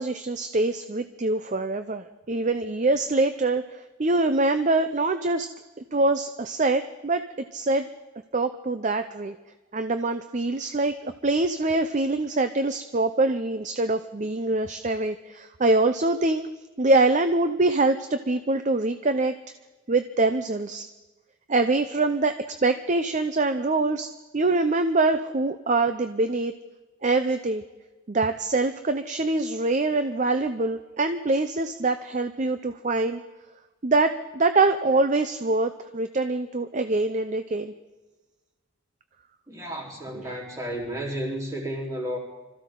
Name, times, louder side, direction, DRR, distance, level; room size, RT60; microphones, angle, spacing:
voice 1, 0.0-5.5 5.8-7.2 7.5-7.9 8.3-9.3 9.7-16.5 16.8-19.3 19.9-20.9 21.5-24.1 24.3-26.5 27.0-27.6 28.1-33.2 33.8-37.7 40.1-40.3, right 2 dB, 35° right, 9 dB, 0.6 m, -24 dB
voice 2, 39.5-42.2, equal, 15° right, -4 dB, 3.8 m, -32 dB
25.5 x 14.5 x 3.8 m, 1.2 s
head